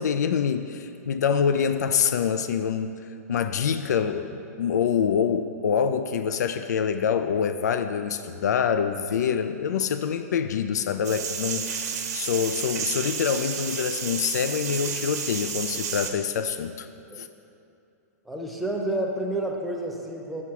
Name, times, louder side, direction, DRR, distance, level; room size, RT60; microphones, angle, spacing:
voice 1, 0.0-3.0 3.3-11.7 12.1-16.9 17.2-17.3, left 7 dB, 80° left, 9 dB, 0.4 m, -25 dB
sound 1, 11.0-16.1, right 6 dB, 75° right, 1.1 m, -31 dB
voice 2, 18.2-20.4, right 1 dB, ahead, -1 dB, 0.7 m, -29 dB
6.5 x 5.7 x 5.9 m, 2.6 s
hypercardioid pair, 140°, 9 cm